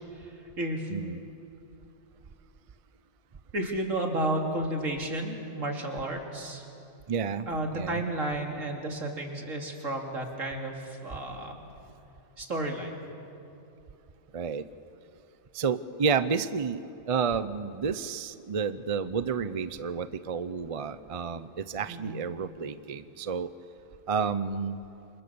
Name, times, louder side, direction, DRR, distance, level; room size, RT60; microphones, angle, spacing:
voice 1, 0.1-0.9 3.5-6.6 7.5-11.5 12.4-12.9 21.9-22.2, right 1 dB, 75° right, 2 dB, 3.1 m, -32 dB
voice 2, 0.9-1.2 7.1-7.5 7.7-8.0 14.3-14.7 15.5-16.8 17.1-23.5 24.1-24.8, right 6 dB, 35° right, 13 dB, 0.6 m, -30 dB
29.5 x 26.5 x 7.0 m, 2.8 s
omnidirectional pair, 1.3 m